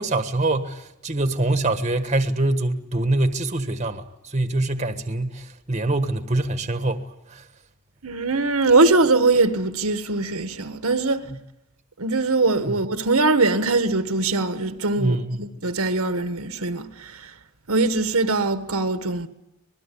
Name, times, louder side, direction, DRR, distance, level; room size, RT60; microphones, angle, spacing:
voice 1, 0.0-7.5 11.3-11.4 12.7-12.8 15.0-15.5, right 2 dB, 30° right, 1.4 m, -24 dB
voice 2, 8.0-11.3 12.0-17.2 17.7-19.3, right 3 dB, 85° right, 1.5 m, -21 dB
26.0 x 20.5 x 8.5 m
head